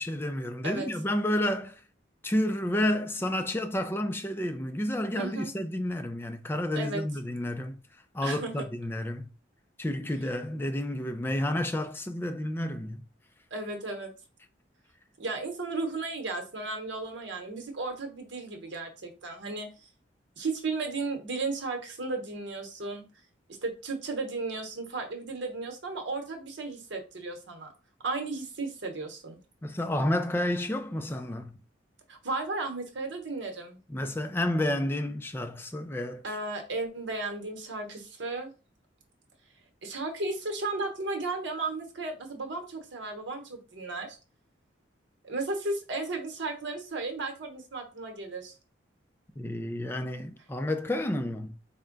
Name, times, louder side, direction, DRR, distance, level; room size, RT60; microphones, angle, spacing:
voice 1, 0.0-1.8 2.2-7.8 8.1-9.3 9.8-13.0 29.6-31.6 33.9-36.4 49.4-51.6, left 1 dB, 10° left, 0.3 m, -30 dB
voice 2, 5.2-5.5 6.7-7.0 8.2-8.7 13.5-14.1 15.2-19.7 20.4-23.0 23.6-27.7 28.0-29.4 32.1-33.8 36.2-38.5 39.8-44.2 45.2-48.5, right 3 dB, 75° right, 1.0 m, -34 dB
4.3 x 2.2 x 3.8 m
head